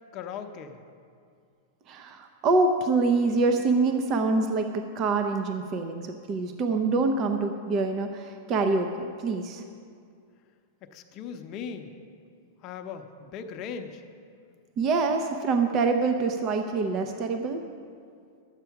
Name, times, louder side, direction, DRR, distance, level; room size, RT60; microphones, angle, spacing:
voice 1, 0.1-0.8 10.8-11.9 12.6-14.0, left 7 dB, 35° left, 6 dB, 0.7 m, -38 dB
voice 2, 1.9-9.6 14.8-17.6, right 3 dB, 30° right, 5 dB, 0.6 m, -25 dB
11.5 x 8.2 x 5.8 m, 2.3 s
supercardioid pair, 155°, 0 cm